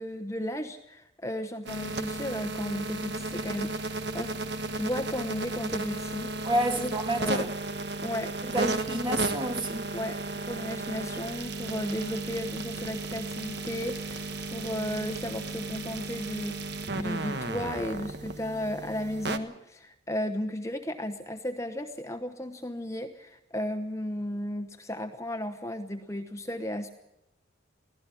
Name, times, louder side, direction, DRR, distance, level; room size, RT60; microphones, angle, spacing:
voice 1, 0.0-6.4 6.8-6.9 7.2-7.5 8.0-8.8 9.9-16.6 16.9-26.9, left 1 dB, 15° left, 1.0 m, -34 dB
sound 1, 1.7-19.4, right 2 dB, 60° right, 1.4 m, -34 dB
voice 2, 6.4-7.5 8.5-9.9, right 1 dB, 25° right, 2.0 m, -29 dB
24.0 x 16.5 x 7.1 m
head